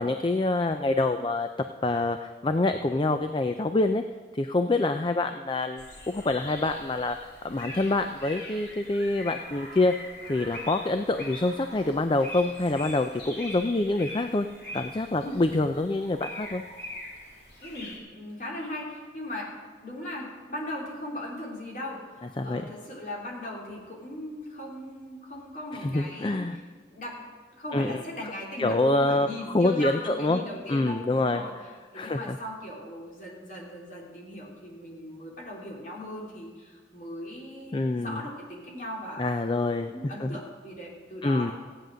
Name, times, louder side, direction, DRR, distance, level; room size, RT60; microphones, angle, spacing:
voice 1, 0.0-1.5 1.8-4.0 4.3-7.2 7.4-9.9 10.3-14.5 14.7-16.6 22.4-22.6 25.8-26.6 27.7-28.0 28.6-30.4 30.7-31.4 31.9-32.4 37.7-38.2 39.2-40.4 41.2-41.5, left 2 dB, 25° left, 7 dB, 0.4 m, -26 dB
sound 1, 5.8-18.0, left 1 dB, 60° left, 3.1 m, -42 dB
voice 2, 17.6-19.5 19.8-26.6 26.9-27.3 27.6-31.5 31.9-39.4 39.8-41.5, left 1 dB, 45° left, -3 dB, 3.3 m, -38 dB
15.5 x 9.3 x 6.3 m, 1.5 s
head